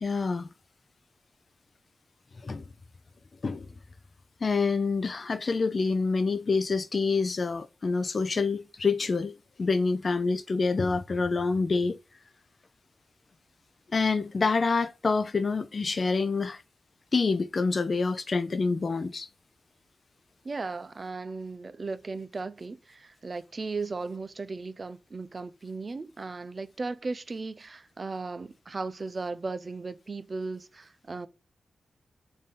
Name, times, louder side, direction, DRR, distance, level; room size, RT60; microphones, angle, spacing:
voice 1, 0.0-0.5 2.4-2.6 3.4-3.7 4.4-9.3 9.6-12.0 13.9-16.6 17.1-19.3, left 4 dB, 50° left, 0.4 m, -27 dB
voice 2, 20.4-31.3, right 3 dB, 45° right, 0.5 m, -36 dB
3.6 x 2.7 x 3.8 m
cardioid pair, 75°, 0 cm